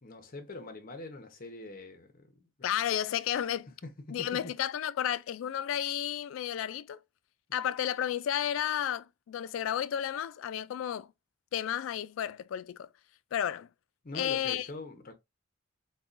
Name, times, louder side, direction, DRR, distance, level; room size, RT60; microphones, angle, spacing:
voice 1, 0.0-2.7 3.3-3.5 3.8-4.5 14.0-15.1, left 2 dB, 45° left, 0.8 m, -44 dB
voice 2, 2.6-3.7 4.1-7.0 7.5-11.1 11.5-12.9 13.3-13.7 14.1-14.7, left 10 dB, 80° left, 0.3 m, -32 dB
5.3 x 2.2 x 2.5 m
head